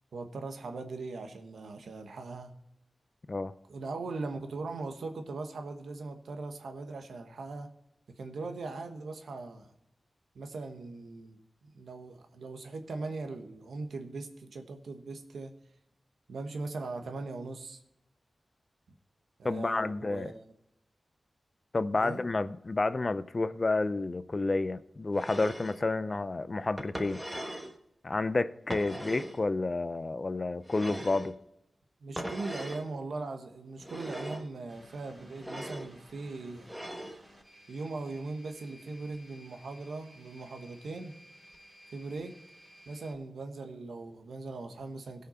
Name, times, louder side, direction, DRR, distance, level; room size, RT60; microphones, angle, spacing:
voice 1, 0.1-2.5 3.7-7.8 8.1-9.7 10.3-15.5 16.3-17.8 19.4-20.4 22.0-22.2 32.0-36.7 37.7-41.2 41.9-42.4 42.9-45.3, right 3 dB, 90° right, 1.2 m, -40 dB
voice 2, 19.4-20.3 21.7-27.2 28.0-31.3, left 3 dB, 40° left, 0.5 m, -30 dB
sound 1, 25.1-25.8 26.8-27.7 28.7-29.4 30.6-31.3 32.2-32.9 33.8-34.5 35.3-35.9 36.6-37.2, equal, 10° right, 1.3 m, -40 dB
sound 2, 34.7-43.1, equal, 30° right, 4.1 m, -57 dB
17.0 x 5.7 x 4.4 m
wide cardioid pair, 75°, 0 cm